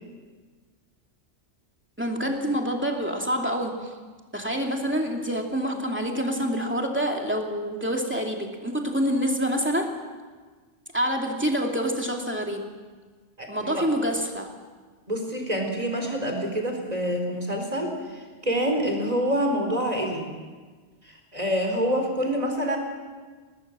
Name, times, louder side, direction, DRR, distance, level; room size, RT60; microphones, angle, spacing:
voice 1, 2.0-3.9 4.3-9.9 10.9-12.7 13.5-14.5, equal, 10° right, 1 dB, 2.6 m, -27 dB
voice 2, 13.4-13.8 15.1-20.3 21.0-22.8, equal, 35° right, 3 dB, 4.2 m, -27 dB
21.5 x 19.0 x 7.5 m, 1.4 s
omnidirectional pair, 1.2 m